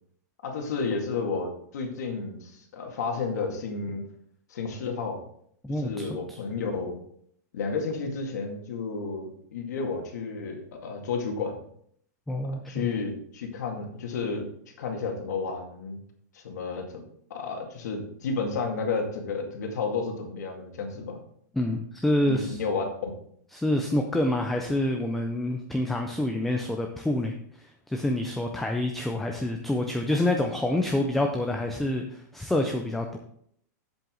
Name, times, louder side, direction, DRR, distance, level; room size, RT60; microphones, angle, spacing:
voice 1, 0.4-4.0 4.5-5.2 5.8-7.0 7.5-11.6 12.5-14.5 14.8-16.0 16.3-17.0 17.3-21.2 22.3-23.1, left 4 dB, 70° left, 3 dB, 2.1 m, -31 dB
voice 2, 5.6-6.4 12.3-12.9 21.5-22.6 23.5-33.2, left 1 dB, ahead, 3 dB, 0.3 m, -27 dB
7.7 x 7.7 x 3.8 m, 0.67 s
supercardioid pair, 175°, 9 cm